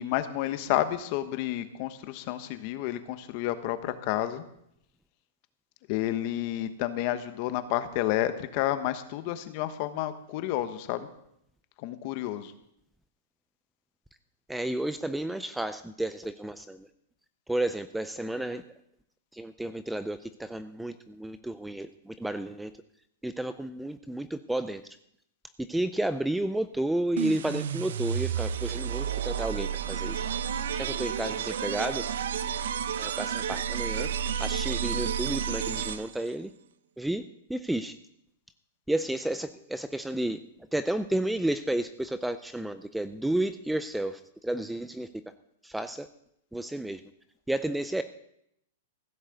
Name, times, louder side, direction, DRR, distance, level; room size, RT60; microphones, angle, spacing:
voice 1, 0.0-4.4 5.9-11.1 11.8-12.5, left 13 dB, 40° left, 11 dB, 1.1 m, -30 dB
voice 2, 14.5-16.9 17.5-18.6 19.3-22.7 23.2-24.8 25.7-30.3 30.7-32.0 33.0-34.1 34.4-36.5 37.0-37.2 37.5-38.0 38.9-40.4 40.7-45.1 45.6-46.1 46.5-47.0 47.5-48.0, right 1 dB, 5° right, 11 dB, 0.4 m, -31 dB
sound 1, 27.2-36.3, right 8 dB, 80° right, 0.8 m, -31 dB
15.5 x 6.5 x 7.9 m, 0.75 s
hypercardioid pair, 155°, 0 cm